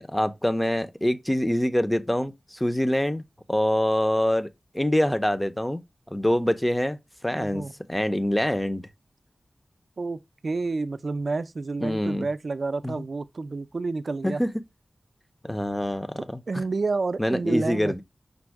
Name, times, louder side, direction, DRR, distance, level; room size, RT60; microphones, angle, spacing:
voice 1, 0.0-3.2 3.5-4.5 4.7-5.8 6.1-7.0 7.2-8.9 11.8-12.3 12.8-13.0 14.2-14.5 15.4-16.6 17.2-18.0, left 1 dB, 10° left, 0.5 m, -25 dB
voice 2, 7.3-7.7 10.0-14.4 16.2-18.0, right 3 dB, 65° right, 0.3 m, -29 dB
5.1 x 2.1 x 4.5 m
wide cardioid pair, 80°, 0 cm